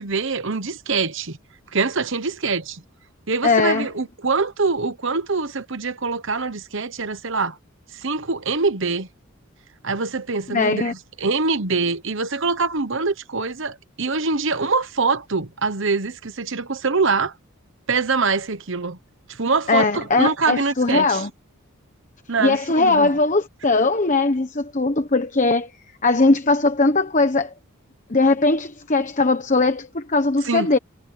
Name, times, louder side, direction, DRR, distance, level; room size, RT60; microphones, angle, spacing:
voice 1, 0.0-1.4 1.7-2.8 3.3-7.6 7.9-9.1 9.8-17.3 17.9-19.0 19.3-21.2 22.3-23.1 30.4-30.7, right 4 dB, 60° right, 1.2 m, -24 dB
voice 2, 3.4-3.9 10.5-10.9 19.7-21.3 22.4-25.7 26.0-27.5 28.1-30.8, left 3 dB, 35° left, 1.2 m, -19 dB
head